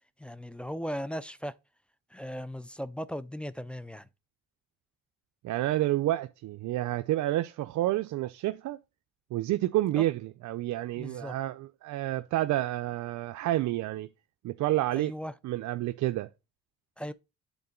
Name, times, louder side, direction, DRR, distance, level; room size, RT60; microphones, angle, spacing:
voice 1, 0.2-1.5 2.1-4.1 10.0-10.1 11.0-11.4 14.9-15.3 17.0-17.1, equal, 5° left, 0.5 m, -37 dB
voice 2, 5.4-8.8 9.3-14.1 14.4-15.1 15.4-16.3, right 15 dB, 75° right, 0.5 m, -29 dB
8.3 x 3.8 x 5.1 m
cardioid pair, 90°, 30 cm